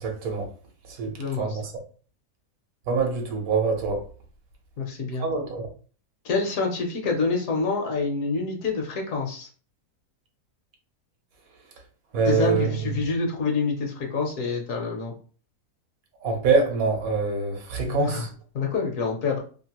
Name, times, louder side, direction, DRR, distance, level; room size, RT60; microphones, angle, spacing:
voice 1, 0.0-0.5 1.0-1.6 2.9-4.0 5.2-5.7 12.1-12.7 16.2-18.3, right 4 dB, 70° right, 1.1 m, -25 dB
voice 2, 1.2-1.6 4.8-5.2 6.2-9.5 12.3-15.1 17.9-18.3 18.5-19.4, left 4 dB, 65° left, 1.1 m, -27 dB
2.9 x 2.4 x 2.8 m
omnidirectional pair, 1.6 m